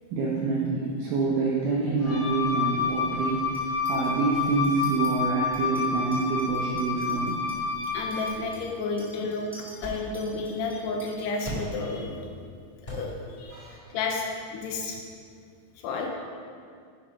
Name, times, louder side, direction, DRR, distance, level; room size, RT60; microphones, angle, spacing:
voice 1, 0.1-7.4 13.5-13.9, right 4 dB, 75° right, -5 dB, 1.9 m, -27 dB
Wind instrument woodwind instrument, 2.0-8.3, left 4 dB, 60° left, 3.2 m, -29 dB
Chink clink, 3.5-4.1 4.4-5.1 5.5-11.2, right 1 dB, ahead, 1.1 m, -51 dB
voice 2, 7.9-12.2 12.8-13.1 13.4-13.6 13.9-14.2 14.5-15.0 15.8-16.1, left 3 dB, 80° left, 1 dB, 2.6 m, -31 dB
sound 1, 8.1-15.2, right 1 dB, 30° left, 0.8 m, -43 dB
10.0 x 7.6 x 5.1 m, 2.2 s
omnidirectional pair, 5.2 m